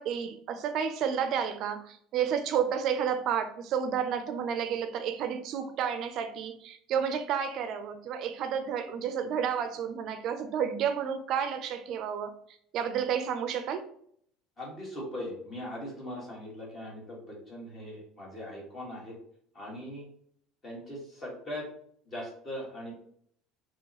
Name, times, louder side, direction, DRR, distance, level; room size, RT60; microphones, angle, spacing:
voice 1, 0.0-12.3 12.7-13.9, right 8 dB, 45° right, 8 dB, 0.5 m, -31 dB
voice 2, 14.6-19.1 19.5-20.1 20.6-21.7 22.1-22.9, left 1 dB, 25° left, -3 dB, 1.8 m, -40 dB
5.3 x 3.1 x 3.0 m, 0.65 s
cardioid pair, 170°, 0 cm